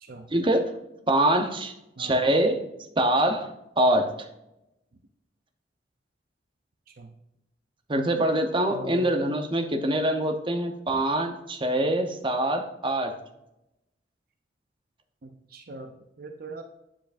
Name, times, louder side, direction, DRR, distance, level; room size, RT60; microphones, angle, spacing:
voice 1, 0.3-0.7 1.1-2.6 3.0-3.5 3.8-4.1 7.9-13.1, right 1 dB, 30° right, 5 dB, 0.8 m, -24 dB
voice 2, 8.7-9.2 10.9-11.0 15.2-16.6, right 1 dB, 55° right, 5 dB, 0.6 m, -41 dB
9.2 x 7.4 x 2.6 m, 0.89 s
head